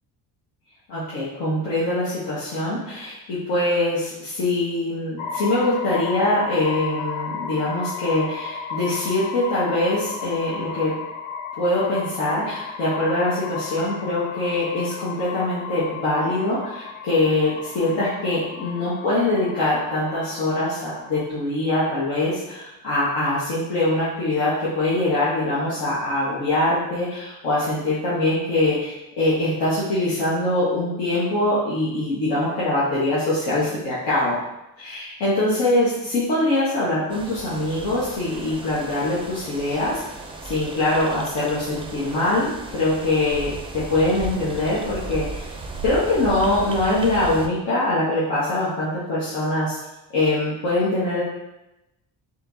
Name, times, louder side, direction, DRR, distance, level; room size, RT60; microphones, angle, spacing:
voice 1, 0.9-10.9 11.6-34.4 34.8-40.0 40.4-45.5 45.8-49.8 50.1-51.2, left 2 dB, 85° left, -10 dB, 1.5 m, -23 dB
sound 1, 5.2-21.3, left 6 dB, 50° left, 0.5 m, -34 dB
sound 2, 37.1-47.5, right 2 dB, 15° right, 0.4 m, -36 dB
4.4 x 3.7 x 2.7 m, 0.91 s
cardioid pair, 120°, 39 cm